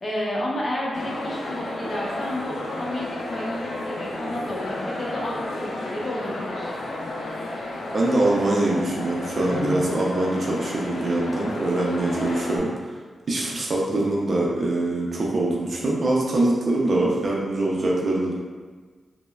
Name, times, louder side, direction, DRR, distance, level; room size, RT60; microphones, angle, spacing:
voice 1, 0.0-6.7, left 1 dB, 50° left, -4 dB, 0.7 m, -31 dB
sound 1, 0.9-12.6, left 2 dB, 90° left, 0.4 m, -32 dB
voice 2, 7.9-12.9 13.3-18.3, right 2 dB, 60° right, -3 dB, 0.4 m, -23 dB
3.1 x 2.0 x 2.2 m, 1.4 s
cardioid pair, 55°, 0 cm